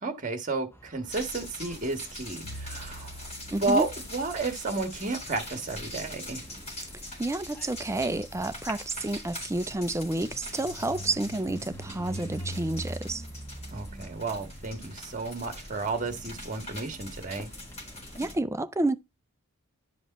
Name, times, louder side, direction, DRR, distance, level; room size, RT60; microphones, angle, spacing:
voice 1, 0.0-3.3 3.6-6.4 13.7-17.5, right 3 dB, 35° right, 1.6 m, -32 dB
sound 1, 0.7-18.4, right 1 dB, 10° left, 1.1 m, -45 dB
sound 2, 1.1-18.3, left 1 dB, 30° left, 4.2 m, -43 dB
Bowed string instrument, 2.4-6.6, right 1 dB, 75° left, 1.0 m, -47 dB
voice 2, 3.5-3.9 6.9-13.2 18.2-19.0, right 2 dB, 15° right, 0.4 m, -30 dB
11.0 x 5.3 x 4.1 m
head